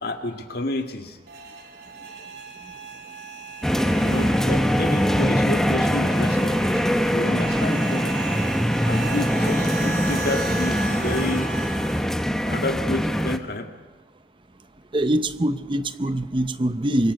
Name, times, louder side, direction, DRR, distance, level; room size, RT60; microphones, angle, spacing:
voice 1, 0.0-1.2 4.0-6.6 7.1-8.2 8.9-11.5 12.4-13.7, left 2 dB, 55° left, 5 dB, 1.9 m, -29 dB
sound 1, 1.3-12.1, right 4 dB, 60° right, 3.1 m, -36 dB
sound 2, 3.6-13.4, equal, 5° left, 0.9 m, -22 dB
voice 2, 14.9-17.1, right 1 dB, 25° right, 12 dB, 0.8 m, -23 dB
25.0 x 22.0 x 5.4 m, 1.3 s
head